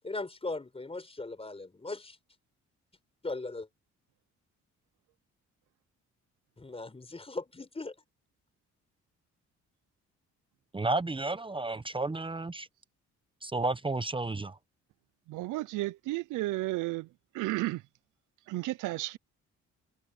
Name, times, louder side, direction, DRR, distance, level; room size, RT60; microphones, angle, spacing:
voice 1, 0.0-2.2 3.2-3.7 6.6-7.9, left 2 dB, 20° left, 4.6 m, -38 dB
voice 2, 10.7-12.7 13.4-14.5, right 2 dB, 15° right, 0.9 m, -32 dB
voice 3, 15.3-17.1 17.3-17.8 18.5-19.2, right 19 dB, 85° right, 0.5 m, -32 dB
cardioid pair, 90°, 30 cm